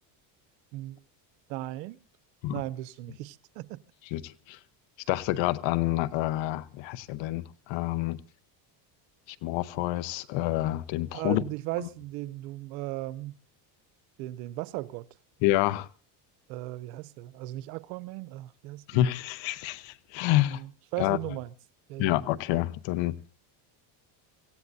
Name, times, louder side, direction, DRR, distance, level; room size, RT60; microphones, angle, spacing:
voice 1, 0.7-1.0 1.5-2.0 2.5-3.8 11.1-13.3 14.2-15.1 16.5-18.8 20.3-21.5 21.9-22.2, right 17 dB, 90° right, 0.8 m, -37 dB
voice 2, 4.1-4.6 5.1-8.2 9.3-11.4 11.8-11.9 15.4-15.9 18.9-20.6 21.0-21.2 22.0-23.1, left 15 dB, 65° left, 1.0 m, -28 dB
24.5 x 16.0 x 2.7 m
supercardioid pair, 105°, 48 cm